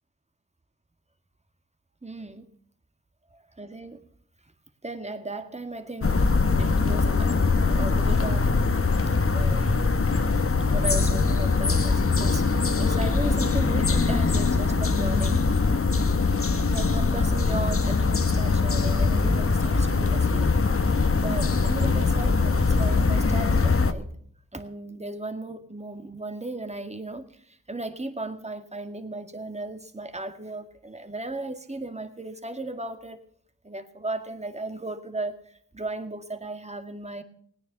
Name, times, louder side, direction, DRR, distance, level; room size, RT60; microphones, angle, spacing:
voice 1, 2.0-2.5 3.3-4.0 4.8-6.2 6.6-8.6 9.3-10.3 10.6-12.5 12.8-15.4 16.7-20.5 20.9-24.1 24.5-33.2 33.6-37.2, right 2 dB, 20° right, 8 dB, 2.0 m, -36 dB
sound 1, 6.0-23.9, left 4 dB, 40° left, 1.3 m, -22 dB
17.0 x 9.8 x 6.8 m, 0.62 s
cardioid pair, 45°, 35 cm